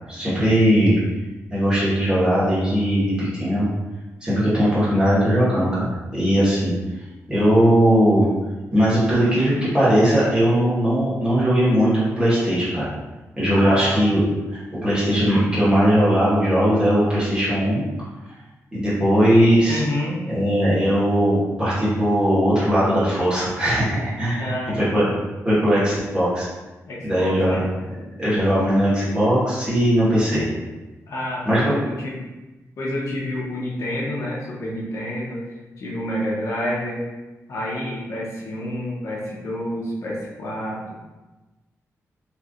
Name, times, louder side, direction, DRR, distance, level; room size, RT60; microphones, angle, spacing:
voice 1, 0.1-1.0 1.5-3.7 4.2-6.7 7.3-8.2 8.7-12.9 13.4-14.2 14.5-17.8 18.7-19.8 20.3-25.1 25.4-26.5 27.0-27.6 28.2-30.5 31.4-31.6, equal, 15° right, -10 dB, 1.3 m, -19 dB
voice 2, 13.5-14.0 19.6-20.2 24.4-25.1 26.9-27.6 31.1-32.2 32.8-35.4 35.8-37.0 37.5-40.9, left 1 dB, 65° left, -5 dB, 0.8 m, -28 dB
3.2 x 3.0 x 2.5 m, 1.1 s
wide cardioid pair, 160°, 6 cm